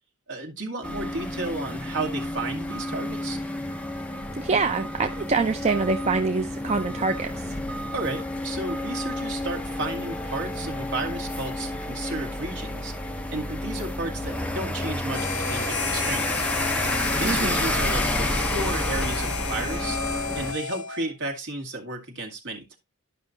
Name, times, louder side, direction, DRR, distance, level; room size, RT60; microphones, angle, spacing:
voice 1, 0.3-3.4 7.9-12.9 13.3-16.5 17.1-20.0 20.3-22.8, right 2 dB, 55° right, 2.2 m, -33 dB
sound 1, 0.8-20.5, left 1 dB, 5° left, 0.8 m, -30 dB
voice 2, 4.4-7.6 17.2-17.5, right 4 dB, 30° right, 0.5 m, -25 dB
Harmonica, 15.1-21.1, left 5 dB, 75° left, 1.0 m, -32 dB
12.0 x 5.6 x 2.7 m
head